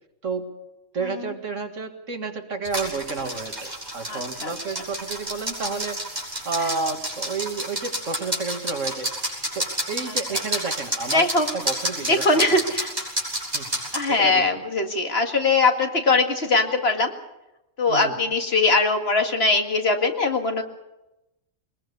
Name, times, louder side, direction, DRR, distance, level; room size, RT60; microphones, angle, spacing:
voice 1, 0.2-0.5 0.9-6.0 6.5-9.1 9.5-11.3 11.5-12.4 13.5-13.7 14.1-14.6 17.9-18.1, right 4 dB, 75° right, 5 dB, 2.3 m, -31 dB
sound 1, 2.6-14.0, equal, 35° right, 6.0 m, -30 dB
voice 2, 4.1-4.5 6.6-6.7 10.1-10.4 11.1-11.5 12.1-12.9 13.9-17.1 17.8-20.6, left 3 dB, 55° left, 4 dB, 2.3 m, -21 dB
22.0 x 21.0 x 6.9 m, 0.93 s
omnidirectional pair, 1.3 m